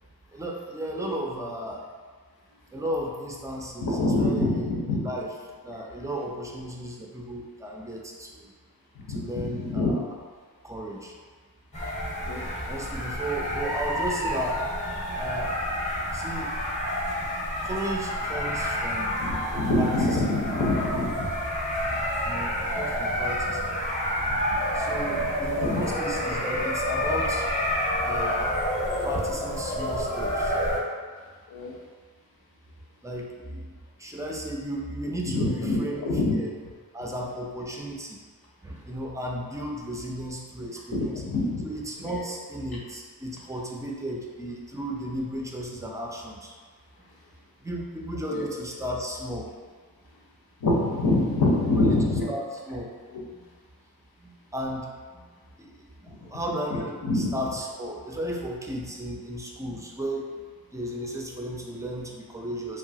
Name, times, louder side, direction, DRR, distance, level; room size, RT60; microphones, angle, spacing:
voice 1, 0.3-1.9 2.7-5.3 5.6-8.5 9.1-10.2 10.6-11.2 12.7-14.6 15.1-15.6 16.1-16.6 17.5-19.2 19.7-19.9 22.2-23.7 24.7-27.6 28.0-28.6 29.0-30.6 33.0-33.7 34.0-36.0 36.3-36.5 36.9-38.2 38.6-41.2 41.6-46.5 47.6-49.5 51.8-52.0 52.3-52.9 53.3-53.4 54.2-55.3 55.6-60.3 60.7-62.8, right 1 dB, 10° right, -1 dB, 0.3 m, -34 dB
voice 2, 3.8-5.0 9.1-10.0 12.3-12.4 19.2-21.1 25.6-25.8 31.5-31.7 35.3-36.3 40.9-41.6 42.0-42.2 48.3-48.5 50.6-52.3 57.0-57.3, left 2 dB, 70° left, -3 dB, 0.7 m, -25 dB
sound 1, 11.7-30.8, equal, 20° left, 0.7 m, -29 dB
2.8 x 2.3 x 2.6 m, 1.5 s
wide cardioid pair, 75°, 38 cm